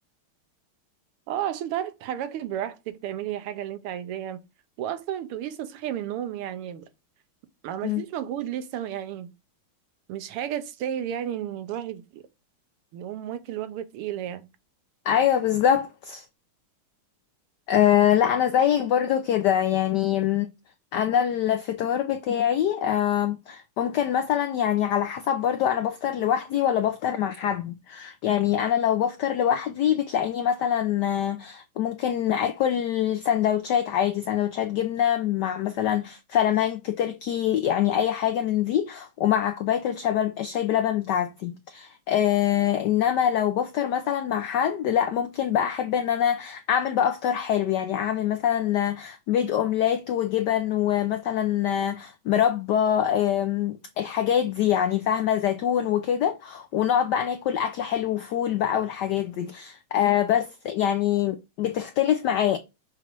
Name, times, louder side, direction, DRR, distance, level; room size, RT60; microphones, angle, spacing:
voice 1, 1.3-4.4 4.8-6.9 7.6-9.3 10.1-12.2 12.9-14.5, right 10 dB, 90° right, 1.7 m, -32 dB
voice 2, 15.1-16.2 17.7-20.5 20.9-62.6, left 10 dB, 90° left, 0.9 m, -24 dB
6.9 x 3.0 x 4.6 m
omnidirectional pair, 2.4 m